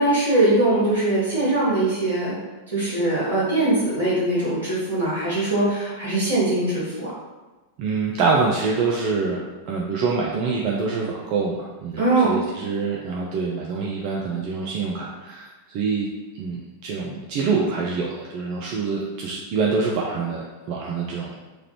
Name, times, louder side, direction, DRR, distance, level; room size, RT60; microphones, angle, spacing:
voice 1, 0.0-2.4 2.7-7.1 11.9-12.3, right 2 dB, 75° right, -9 dB, 1.5 m, -21 dB
voice 2, 7.8-9.4 9.7-16.1 16.3-21.3, right 4 dB, 45° right, -2 dB, 0.4 m, -25 dB
3.1 x 2.5 x 2.9 m, 1.2 s
figure-of-eight pair, 90°, 0 cm